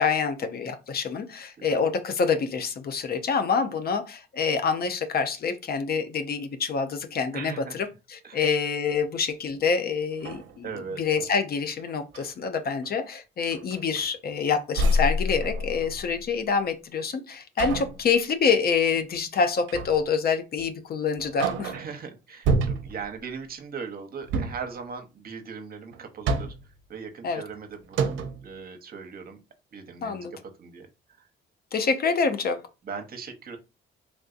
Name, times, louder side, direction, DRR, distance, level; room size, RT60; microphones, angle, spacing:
voice 1, 0.0-21.7 27.2-27.4 30.0-30.3 31.7-32.6, left 5 dB, 50° left, 0.6 m, -26 dB
voice 2, 7.3-7.8 8.2-8.5 10.6-11.0 21.7-26.5 26.9-28.1 28.4-29.4 29.7-30.9 32.8-33.6, right 5 dB, 50° right, 0.8 m, -39 dB
sound 1, 9.5-9.6 10.1-11.3 11.9-12.3 12.8-13.0 13.5-14.4 14.7-16.3 17.6-18.1 19.7-20.1 20.6-20.7 21.2-22.0 22.4-23.1 24.2-24.7 25.9-26.8 27.5-27.6 27.9-28.5, right 1 dB, 75° right, 0.5 m, -28 dB
3.5 x 2.6 x 2.5 m
cardioid pair, 90°, 20 cm